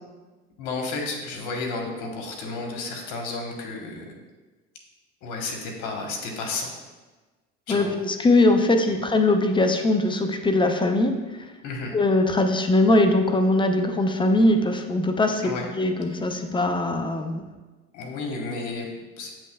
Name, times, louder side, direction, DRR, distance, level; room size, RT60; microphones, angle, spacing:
voice 1, 0.6-4.1 5.2-6.7 7.7-7.9 8.9-9.0 11.6-11.9 15.4-15.7 17.9-19.3, left 3 dB, 65° left, 1 dB, 1.1 m, -32 dB
voice 2, 7.7-11.5 11.9-15.5 15.7-17.4, left 2 dB, 15° left, 6 dB, 0.4 m, -21 dB
7.5 x 3.2 x 2.2 m, 1.2 s
hypercardioid pair, 70°, 33 cm